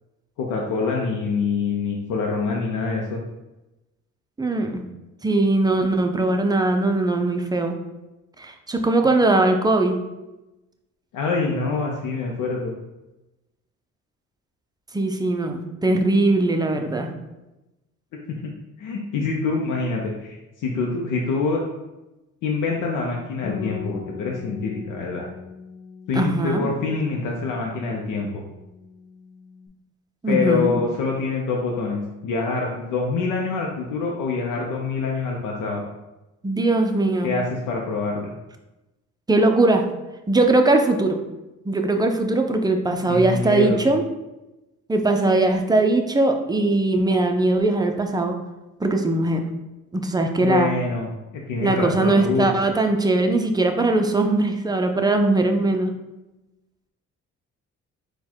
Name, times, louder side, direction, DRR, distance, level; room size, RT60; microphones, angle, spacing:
voice 1, 0.4-3.2 11.1-12.8 18.4-18.5 18.8-21.6 22.4-25.3 26.1-28.4 30.3-35.8 37.2-38.3 43.1-43.9 50.4-51.1 51.3-52.5, left 4 dB, 90° left, 0 dB, 0.6 m, -25 dB
voice 2, 4.4-4.8 5.2-7.8 8.4-10.0 14.9-17.1 26.1-26.7 30.2-30.7 36.4-37.4 39.3-39.8 40.3-41.2 41.6-44.0 44.9-48.4 48.8-49.4 49.9-50.7 51.6-55.9, right 2 dB, 15° right, 4 dB, 0.5 m, -20 dB
Bass guitar, 23.4-29.7, left 7 dB, 45° left, 0.6 m, -40 dB
4.4 x 2.3 x 4.3 m, 1.0 s
cardioid pair, 90°, 30 cm